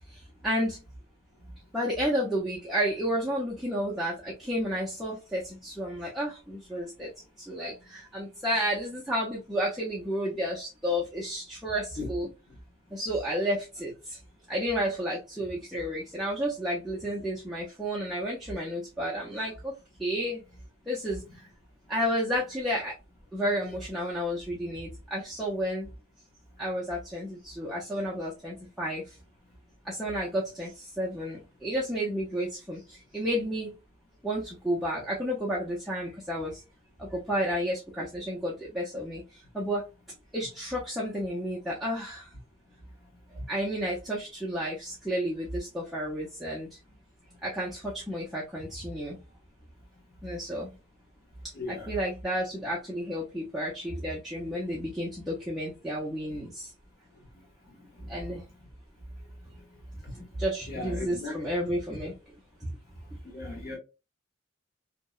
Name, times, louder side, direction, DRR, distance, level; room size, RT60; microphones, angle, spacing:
voice 1, 0.1-0.8 1.7-7.1 7.4-12.3 12.9-14.2 14.5-19.7 20.0-20.4 20.9-21.5 21.9-22.9 23.3-25.9 26.6-29.2 29.8-33.7 34.2-36.6 37.0-39.9 40.3-42.3 43.5-46.8 47.4-49.2 50.2-50.7 51.4-56.7 58.1-58.4 60.4-62.1 62.6-62.7, equal, ahead, 0.4 m, -31 dB
voice 2, 51.5-51.9 58.0-58.1 60.7-61.4 63.3-63.8, left 2 dB, 45° left, 1.1 m, -36 dB
2.7 x 2.0 x 2.2 m
head